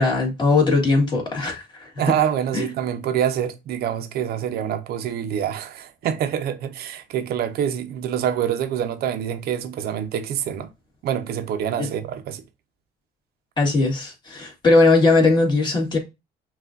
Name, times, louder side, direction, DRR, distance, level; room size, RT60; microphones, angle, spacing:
voice 1, 0.0-1.9 2.5-2.7 11.8-11.9 13.6-16.0, left 3 dB, 25° left, 1.7 m, -19 dB
voice 2, 2.0-10.7 11.0-12.4, right 9 dB, 70° right, 0.7 m, -26 dB
5.8 x 2.4 x 2.5 m
cardioid pair, 110°, 17 cm